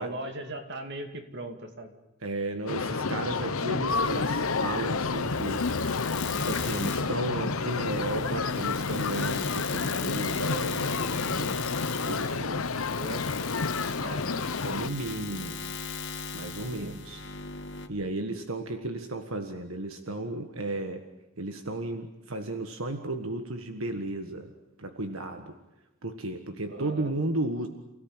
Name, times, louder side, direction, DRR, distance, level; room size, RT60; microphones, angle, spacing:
voice 1, 0.0-2.0 12.9-13.3 14.0-14.5 16.8-17.0 26.7-27.1, right 1 dB, 55° right, 6 dB, 2.6 m, -38 dB
voice 2, 2.2-5.7 6.3-11.6 12.0-12.7 14.6-15.6 16.3-17.2 17.9-21.0 21.4-24.5 24.8-25.5 26.0-27.7, right 2 dB, 80° right, 6 dB, 1.6 m, -34 dB
sound 1, 2.7-14.9, left 4 dB, 85° left, 1.0 m, -30 dB
sound 2, 3.9-17.9, left 5 dB, 60° left, 2.4 m, -38 dB
29.0 x 17.5 x 9.0 m, 0.98 s
head